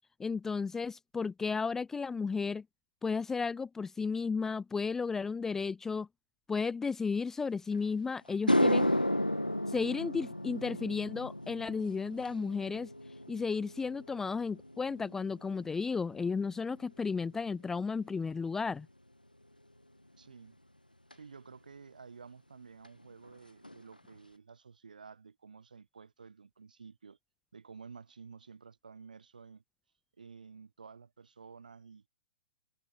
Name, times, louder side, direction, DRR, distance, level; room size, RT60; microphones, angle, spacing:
voice 1, 0.2-2.6 3.0-6.1 6.5-8.9 9.7-12.9 13.3-18.9, left 5 dB, 10° left, 0.4 m, -33 dB
sound 1, 7.7-7.8 8.3-16.8 17.1-17.5 21.1-21.2 22.8-22.9 23.2-23.4 23.6-24.2, left 1 dB, 90° left, 1.1 m, -33 dB
voice 2, 20.2-20.6 21.1-27.2 27.5-29.6 30.2-32.1, right 5 dB, 70° right, 7.8 m, -52 dB
figure-of-eight pair, 115°, 5 cm